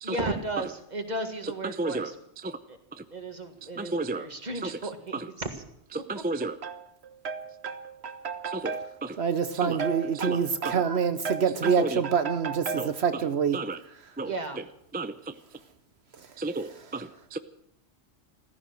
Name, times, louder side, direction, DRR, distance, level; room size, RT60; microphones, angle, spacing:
voice 1, 0.0-2.2 2.7-2.8 3.1-5.6 5.9-6.2 14.2-14.6, right 2 dB, 40° right, 6 dB, 1.9 m, -35 dB
voice 2, 1.6-2.1 2.4-2.6 2.9-3.0 3.8-4.3 4.6-4.8 5.1-5.3 5.9-6.6 8.5-9.2 9.6-9.8 10.1-10.4 10.6-10.8 11.6-12.0 12.8-13.2 13.5-13.8 14.2-14.3 14.9-15.3 16.4-17.4, right 2 dB, 10° right, 10 dB, 0.4 m, -33 dB
voice 3, 7.2-13.6, right 6 dB, 70° right, 10 dB, 1.1 m, -27 dB
15.0 x 14.5 x 6.5 m, 0.73 s
omnidirectional pair, 1.2 m